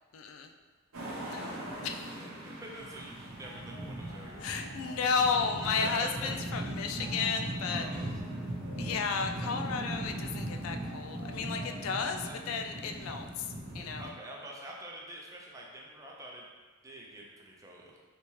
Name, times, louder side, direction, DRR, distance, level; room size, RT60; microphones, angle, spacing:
voice 1, 0.1-0.5 1.3-1.6 1.8-2.2 4.4-7.8 8.8-13.5 13.7-14.1, left 5 dB, 70° left, 6 dB, 0.3 m, -33 dB
sound 1, 0.9-14.1, right 1 dB, 85° right, 0.8 m, -39 dB
voice 2, 2.0-4.5 5.6-6.3 7.7-8.3 9.4-9.7 12.2-12.4 14.0-16.5 16.8-18.0, right 1 dB, 15° right, -2 dB, 0.5 m, -46 dB
sound 2, 3.4-13.1, left 1 dB, 40° left, 0.7 m, -55 dB
3.4 x 2.8 x 3.1 m, 1.4 s
head